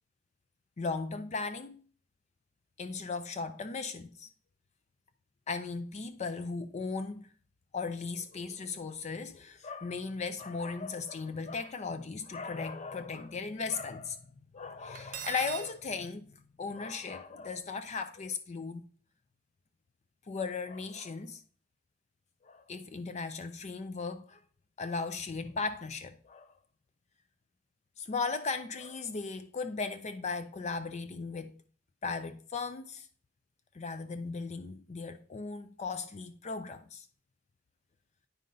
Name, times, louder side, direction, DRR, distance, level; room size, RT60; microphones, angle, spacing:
voice 1, 0.8-1.8 2.8-4.3 5.5-7.3 7.7-16.3 16.6-18.9 20.3-21.4 22.4-24.4 24.8-26.5 28.0-31.5 32.0-33.1 33.7-37.1, left 4 dB, 35° left, 0.4 m, -37 dB
Cutlery silverware, 14.9-15.7, right 8 dB, 45° right, 0.8 m, -40 dB
9.3 x 5.3 x 3.8 m
head